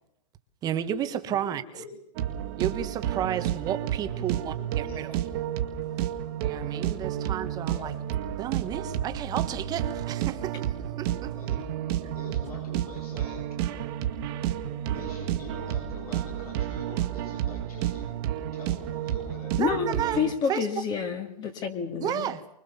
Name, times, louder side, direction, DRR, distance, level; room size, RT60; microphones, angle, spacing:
voice 1, 0.6-1.8 2.6-5.2 6.4-7.9 8.4-11.3 12.0-12.1 19.6-20.2 20.5-20.7 22.0-22.5, right 10 dB, 20° right, 1.4 m, -32 dB
voice 2, 1.2-2.0 4.2-5.1 7.7-8.0 11.3-11.7 12.1-13.5 14.9-19.7, left 3 dB, 70° left, 7.7 m, -45 dB
sound 1, 2.1-20.3, right 11 dB, 35° right, 1.9 m, -31 dB
voice 3, 19.6-22.3, left 6 dB, 20° left, 2.1 m, -29 dB
25.0 x 23.0 x 7.0 m
hypercardioid pair, 155°, 20 cm